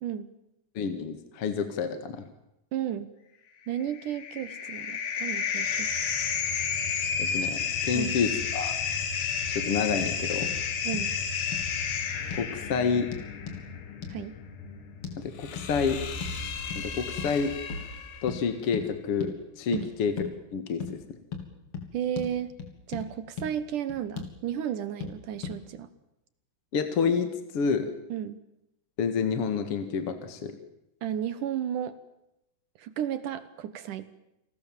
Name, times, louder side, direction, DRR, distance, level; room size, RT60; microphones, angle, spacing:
voice 1, 0.7-2.3 7.2-8.8 9.5-10.6 12.3-13.1 15.2-16.0 16.7-17.5 18.2-20.1 20.5-21.2 26.7-27.9 29.0-30.6, left 6 dB, 50° left, 9 dB, 1.8 m, -29 dB
voice 2, 2.7-3.1 3.7-6.1 7.9-8.1 10.8-11.1 14.1-14.4 19.7-19.9 21.9-22.5 22.9-25.9 28.1-28.4 31.0-32.0 32.8-34.1, right 10 dB, 70° right, 13 dB, 2.1 m, -33 dB
sound 1, 3.8-18.3, left 6 dB, 70° left, 4.6 m, -32 dB
sound 2, 10.0-10.1 10.4-10.5 10.9-11.1 11.5-11.7 12.3-12.5 13.1-13.6 14.0-14.2 15.0-15.2 15.6-15.7 16.2-16.4 16.7-16.8 17.2-17.4 17.7-17.9 18.3-18.4 18.7-18.9 19.2-19.3 19.7-19.9 20.2-20.3 20.8-20.9 21.3-21.5 21.7-21.9 22.2-22.3 22.6-23.1 23.4-23.5 23.9-24.3 25.0-25.1 25.4-25.6, left 6 dB, 35° left, 4.2 m, -36 dB
29.5 x 20.5 x 7.4 m, 0.88 s
omnidirectional pair, 4.9 m